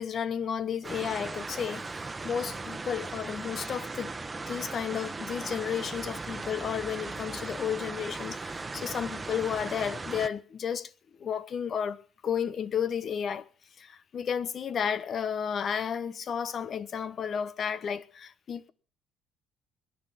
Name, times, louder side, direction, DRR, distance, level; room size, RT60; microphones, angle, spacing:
voice 1, 0.0-4.1 4.5-10.9 11.2-13.5 13.8-18.7, left 7 dB, 50° left, 1.1 m, -32 dB
sound 1, 0.8-10.3, right 3 dB, 20° right, 1.2 m, -38 dB
21.0 x 10.5 x 5.8 m
supercardioid pair, 85°, 0 cm